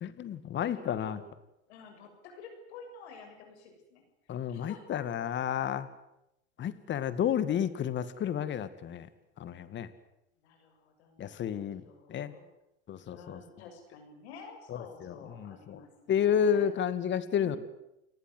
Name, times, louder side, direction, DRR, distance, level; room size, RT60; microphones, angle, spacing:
voice 1, 0.0-1.2 4.3-5.9 6.6-9.1 9.4-9.9 11.2-11.8 12.1-12.3 12.9-13.4 14.7-15.8 16.1-17.6, left 8 dB, 35° left, 13 dB, 2.1 m, -31 dB
voice 2, 0.6-1.2 1.7-4.0 4.5-5.0 10.4-12.5 13.1-16.7 17.4-17.6, left 4 dB, 80° left, 4 dB, 7.1 m, -50 dB
29.0 x 18.5 x 8.0 m, 0.86 s
supercardioid pair, 120°, 32 cm